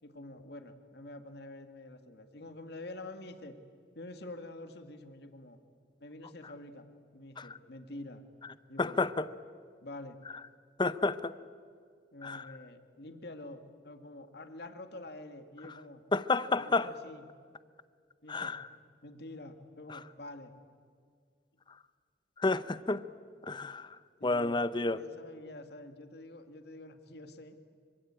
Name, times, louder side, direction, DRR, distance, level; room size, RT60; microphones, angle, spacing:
voice 1, 0.0-3.6 4.0-5.6 6.0-6.9 7.1-8.2 8.7-9.0 9.8-10.2 12.1-16.0 16.6-17.3 18.2-18.6 19.0-20.5 24.2-24.6 24.9-27.6, left 2 dB, 65° left, 2.0 m, -47 dB
voice 2, 8.8-9.3 10.8-11.3 12.2-12.5 16.1-16.9 18.3-18.7 19.9-20.0 22.4-23.0 23.4-24.0 24.2-25.0, left 3 dB, 25° left, 0.7 m, -30 dB
26.0 x 24.5 x 8.9 m
head